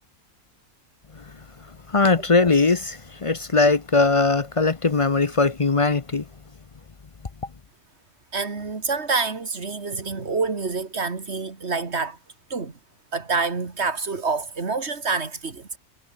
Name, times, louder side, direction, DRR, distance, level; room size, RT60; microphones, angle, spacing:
voice 1, 1.9-6.2, left 3 dB, 30° left, 0.6 m, -20 dB
voice 2, 8.3-12.2 12.5-12.7 13.1-15.8, right 4 dB, 45° right, 2.6 m, -27 dB
omnidirectional pair, 1.6 m